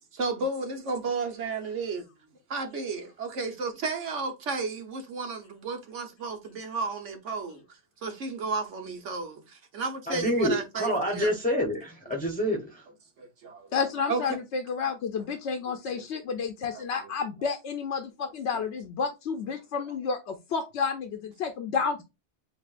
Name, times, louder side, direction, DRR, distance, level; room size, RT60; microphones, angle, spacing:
voice 1, 0.1-2.0 2.5-7.6 8.0-11.3 13.2-13.7 14.1-14.2 15.9-16.0 16.7-16.8, right 4 dB, 85° right, 1.4 m, -33 dB
voice 2, 10.1-12.8, equal, 10° left, 0.9 m, -27 dB
voice 3, 13.7-22.0, left 5 dB, 75° left, 0.9 m, -30 dB
7.7 x 2.7 x 2.4 m
omnidirectional pair, 1.2 m